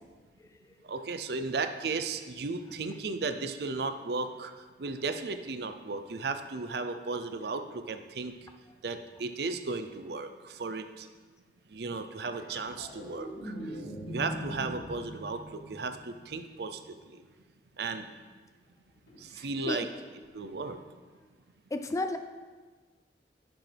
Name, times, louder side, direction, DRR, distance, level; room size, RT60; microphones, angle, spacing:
voice 1, 0.9-8.3 8.8-11.1 11.7-13.5 14.1-17.2 17.8-18.1 19.2-19.9 20.3-20.8, right 3 dB, 65° right, 9 dB, 0.5 m, -35 dB
sound 1, 12.2-16.7 19.1-19.2, equal, 80° left, 1.6 m, -42 dB
voice 2, 19.4-19.9 21.7-22.2, left 2 dB, 15° left, 7 dB, 0.3 m, -33 dB
10.5 x 6.1 x 3.4 m, 1.4 s
head